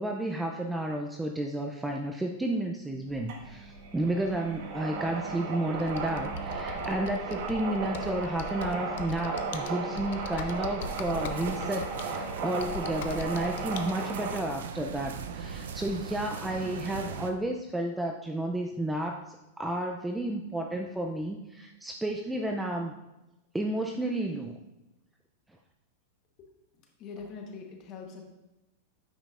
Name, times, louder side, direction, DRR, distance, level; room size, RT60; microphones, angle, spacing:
voice 1, 0.0-22.9 23.5-24.5, right 1 dB, 5° right, 2 dB, 0.3 m, -32 dB
sound 1, 3.1-14.4, right 4 dB, 50° right, 1.1 m, -35 dB
Computer keyboard, 5.8-13.9, left 5 dB, 60° left, 0.5 m, -41 dB
sound 2, 10.8-17.3, right 6 dB, 85° right, 0.5 m, -40 dB
voice 2, 27.0-28.2, left 5 dB, 30° left, 2 dB, 1.0 m, -42 dB
8.8 x 5.2 x 2.4 m, 0.97 s
supercardioid pair, 165°, 0 cm